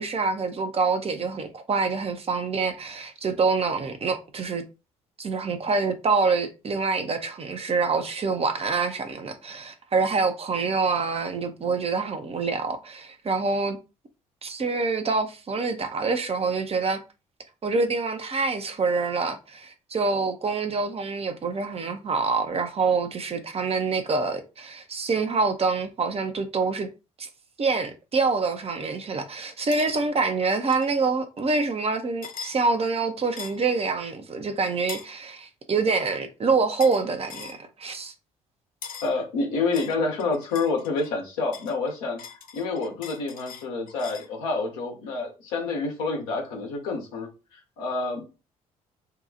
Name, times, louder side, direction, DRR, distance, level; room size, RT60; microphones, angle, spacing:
voice 1, 0.0-4.6 5.2-13.8 14.4-17.0 17.6-26.9 27.2-27.3 27.6-38.1, right 4 dB, 35° right, 0.7 m, -26 dB
sound 1, 29.7-29.9 30.7-30.9 32.2-32.6 33.4-33.7 34.9-35.1 36.8-37.0 37.3-37.6 38.8-39.2 39.7-41.1 41.5-44.3, left 6 dB, 50° left, 0.6 m, -41 dB
voice 2, 39.0-42.2 42.5-48.2, left 3 dB, 75° left, 1.0 m, -28 dB
2.8 x 2.3 x 3.7 m
figure-of-eight pair, 45°, 18 cm